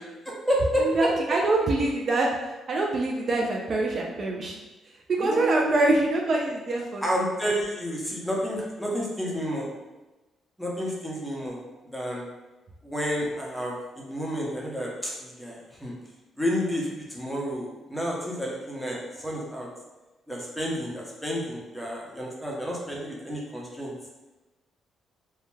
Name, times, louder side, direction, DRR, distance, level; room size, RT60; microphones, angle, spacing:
voice 1, 0.3-1.1 5.2-6.0 7.0-9.7 10.6-11.6 11.8-12.2 12.8-15.9 16.4-19.7 20.3-23.9, equal, ahead, -4 dB, 0.7 m, -30 dB
voice 2, 0.8-4.6 5.1-7.0, right 2 dB, 50° right, -1 dB, 0.3 m, -25 dB
2.2 x 2.0 x 3.1 m, 1.1 s
cardioid pair, 90°, 0 cm